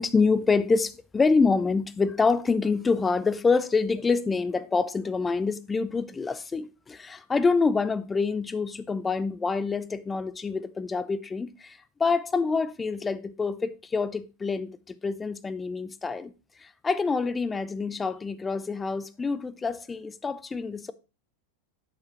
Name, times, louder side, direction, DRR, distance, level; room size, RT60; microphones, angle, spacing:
voice 1, 0.0-16.3 16.6-20.9, left 4 dB, 15° left, 0.5 m, -26 dB
8.2 x 6.6 x 2.9 m
figure-of-eight pair, 90°, 0 cm